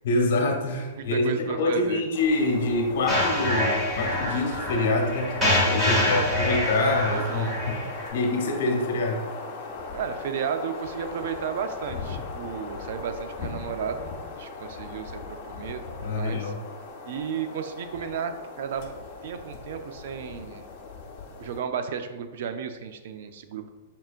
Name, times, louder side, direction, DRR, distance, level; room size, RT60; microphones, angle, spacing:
voice 1, 0.0-7.8 8.1-9.3 16.0-16.6, left 2 dB, 65° left, 2 dB, 0.9 m, -26 dB
voice 2, 1.0-2.0 5.9-6.3 6.8-7.6 9.9-14.1 14.4-16.5 17.1-18.9 19.2-20.7 21.4-23.7, right 7 dB, 65° right, 8 dB, 0.4 m, -33 dB
sound 1, 2.1-21.6, left 4 dB, 40° left, 0.7 m, -39 dB
sound 2, 3.1-8.1, left 1 dB, 10° right, 1.5 m, -26 dB
5.4 x 3.7 x 2.4 m, 1.3 s
hypercardioid pair, 145°, 0 cm